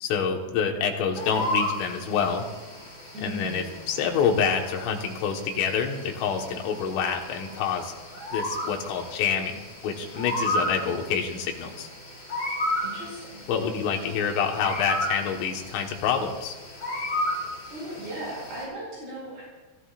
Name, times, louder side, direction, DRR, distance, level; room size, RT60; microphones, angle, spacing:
voice 1, 0.0-2.5 3.2-7.9 8.3-11.9 13.5-16.6, left 6 dB, 85° left, 2 dB, 4.0 m, -27 dB
sound 1, 1.1-18.7, left 1 dB, 25° left, 6.0 m, -34 dB
voice 2, 3.1-3.7 12.8-13.4 17.7-19.4, right 1 dB, 60° right, -6 dB, 7.0 m, -37 dB
27.5 x 15.0 x 2.5 m, 1.2 s
omnidirectional pair, 5.6 m